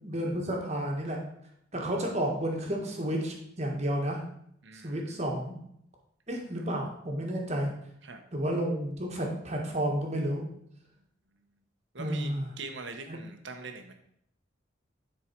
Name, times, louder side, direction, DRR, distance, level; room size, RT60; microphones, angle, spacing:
voice 1, 0.0-1.2 1.7-4.2 4.8-5.5 6.3-7.7 8.3-10.4 12.0-12.5 13.1-13.2, right 1 dB, 35° right, 1 dB, 1.6 m, -31 dB
voice 2, 4.6-5.2 6.5-6.7 8.0-8.2 11.9-13.9, right 3 dB, 75° right, 6 dB, 1.1 m, -42 dB
9.8 x 4.6 x 4.5 m, 0.72 s
head